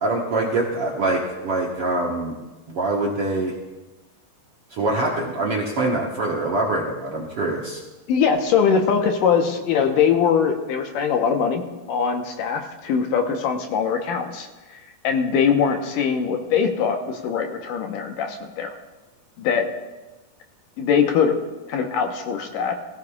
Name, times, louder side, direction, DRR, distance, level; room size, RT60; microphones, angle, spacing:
voice 1, 0.0-2.4 2.7-3.5 4.7-7.8, right 2 dB, 60° right, -3 dB, 1.6 m, -24 dB
voice 2, 8.1-11.6 11.9-14.5 15.0-18.7 19.4-19.6 20.8-21.4 21.7-22.8, left 6 dB, 75° left, 4 dB, 2.4 m, -21 dB
19.5 x 16.0 x 2.4 m, 1.1 s
omnidirectional pair, 4.2 m